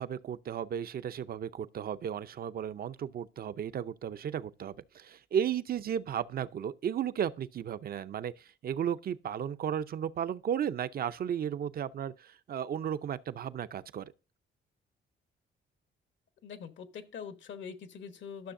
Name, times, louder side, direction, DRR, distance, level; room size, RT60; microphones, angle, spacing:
voice 1, 0.0-14.1, right 9 dB, 50° right, 0.6 m, -34 dB
voice 2, 16.4-18.5, left 6 dB, 70° left, 1.2 m, -43 dB
13.0 x 6.3 x 2.6 m
cardioid pair, 90°, 20 cm